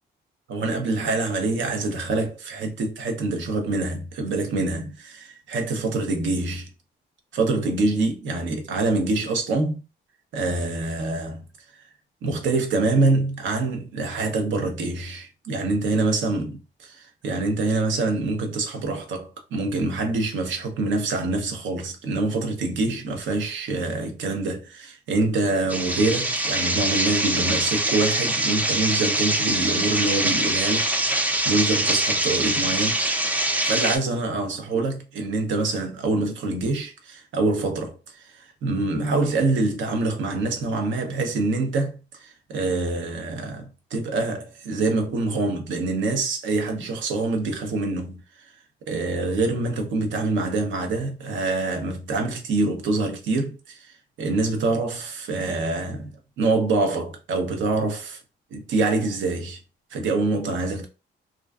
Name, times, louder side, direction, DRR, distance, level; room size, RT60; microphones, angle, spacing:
voice 1, 0.5-6.7 7.3-9.8 10.3-11.5 12.2-16.5 17.2-33.0 33.6-48.2 48.9-58.2 58.5-59.6 59.9-60.9, right 3 dB, 75° right, 0.7 m, -25 dB
sound 1, 25.7-34.0, right 1 dB, 10° right, 0.3 m, -24 dB
2.4 x 2.2 x 2.3 m
cardioid pair, 90°, 20 cm